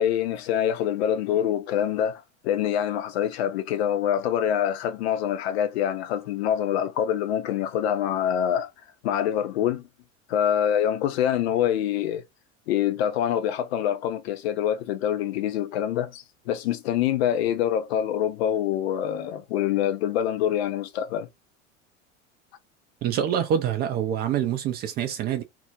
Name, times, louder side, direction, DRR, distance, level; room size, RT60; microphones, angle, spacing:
voice 1, 0.0-8.7 9.0-9.8 10.3-12.2 12.7-21.3, left 10 dB, 55° left, 0.5 m, -25 dB
voice 2, 23.0-25.4, right 9 dB, 25° right, 0.4 m, -26 dB
2.1 x 2.1 x 2.7 m
figure-of-eight pair, 70°, 37 cm